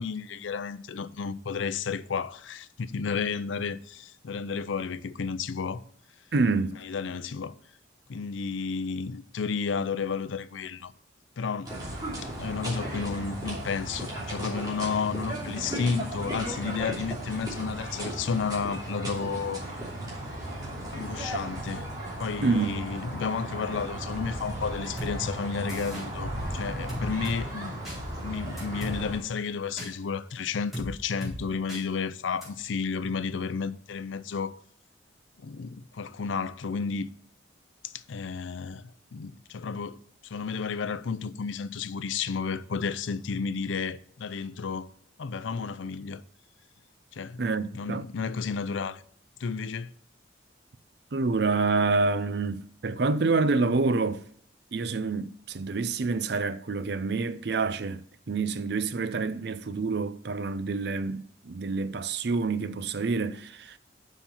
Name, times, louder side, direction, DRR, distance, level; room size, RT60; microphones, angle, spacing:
voice 1, 0.0-5.8 6.8-7.5 8.1-10.9 11.4-11.7 12.2-19.6 20.9-21.8 22.2-27.8 28.2-34.6 35.4-37.1 37.8-44.9 45.2-46.2 47.1-47.4 47.7-49.0 49.4-49.9, left 5 dB, 80° left, 0.5 m, -32 dB
voice 2, 6.3-6.7 22.4-22.8 47.4-48.0 51.1-54.2 54.7-63.8, right 3 dB, 60° right, 0.5 m, -27 dB
sound 1, 11.6-29.2, right 1 dB, 20° right, 2.9 m, -35 dB
sound 2, 25.0-25.1 25.7-26.0 26.9-27.4 27.8-28.0 28.6-29.0 29.8-29.9 30.7-30.9 31.2-31.3 31.7-31.8 32.4-32.5, equal, ahead, 4.1 m, -35 dB
7.2 x 5.8 x 5.5 m
head